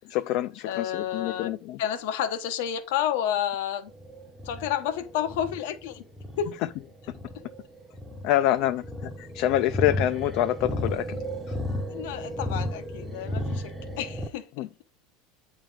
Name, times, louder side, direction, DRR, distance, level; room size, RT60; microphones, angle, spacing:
voice 1, 0.1-1.8 8.2-11.2 11.5-11.6 14.6-14.7, left 13 dB, 50° left, 0.3 m, -26 dB
voice 2, 0.6-1.5 1.8-3.9 4.4-6.0 6.4-6.5 11.7-14.7, left 10 dB, 70° left, 0.8 m, -30 dB
sound 1, 3.9-14.3, left 1 dB, 5° right, 0.6 m, -34 dB
8.9 x 3.2 x 5.0 m
supercardioid pair, 165°, 0 cm